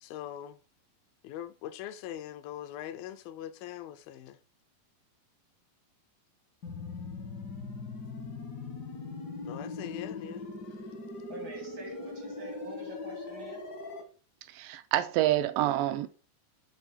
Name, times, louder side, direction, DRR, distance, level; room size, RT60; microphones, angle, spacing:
voice 1, 0.0-0.6 1.2-4.4 9.5-10.5, left 12 dB, 85° left, 2.3 m, -41 dB
sound 1, 6.6-14.0, left 3 dB, 65° left, 1.0 m, -40 dB
voice 2, 11.3-13.6, left 1 dB, 65° right, 1.1 m, -46 dB
voice 3, 14.5-16.1, right 14 dB, 80° right, 2.1 m, -27 dB
7.2 x 3.4 x 6.0 m
omnidirectional pair, 4.1 m